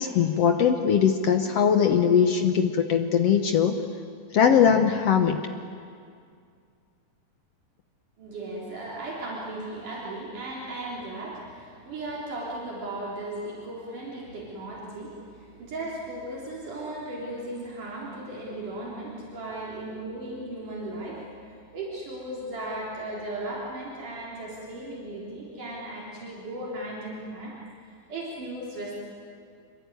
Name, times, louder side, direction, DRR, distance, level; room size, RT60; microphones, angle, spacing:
voice 1, 0.0-3.7 4.3-5.4, left 7 dB, 70° left, 6 dB, 1.5 m, -21 dB
voice 2, 8.2-21.4 21.7-27.5 28.1-28.9, right 1 dB, 65° right, -5 dB, 5.2 m, -36 dB
27.0 x 23.0 x 9.5 m, 2.3 s
omnidirectional pair, 4.0 m